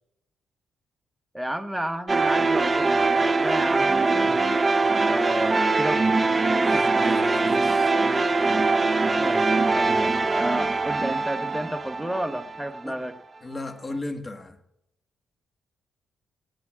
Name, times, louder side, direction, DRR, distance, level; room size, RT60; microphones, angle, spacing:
voice 1, 1.3-4.5 5.0-6.3 6.7-6.9 9.2-13.2, right 1 dB, 5° right, 8 dB, 0.9 m, -32 dB
sound 1, 2.1-13.0, right 3 dB, 25° right, 0.6 m, -22 dB
voice 2, 6.6-8.0 12.8-12.9 13.4-14.6, left 2 dB, 25° left, 7 dB, 1.4 m, -36 dB
19.5 x 17.5 x 2.3 m, 0.82 s
cardioid pair, 90°, 0 cm